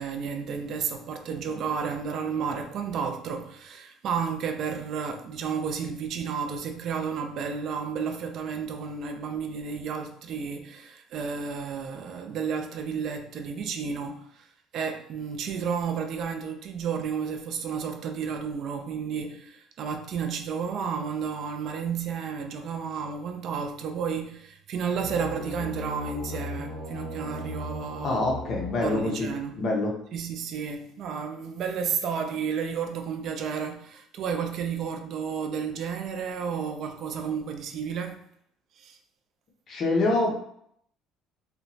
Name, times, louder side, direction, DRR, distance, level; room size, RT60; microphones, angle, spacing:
voice 1, 0.0-14.5 14.7-28.2 28.8-29.6 30.1-38.2 38.8-39.0, right 6 dB, 45° right, 0.3 m, -32 dB
sound 1, 24.9-29.6, left 2 dB, 5° right, 0.8 m, -37 dB
voice 2, 28.0-29.3 29.6-29.9 39.7-40.3, left 2 dB, 35° left, 0.5 m, -25 dB
2.8 x 2.1 x 2.6 m
cardioid pair, 160°, 0 cm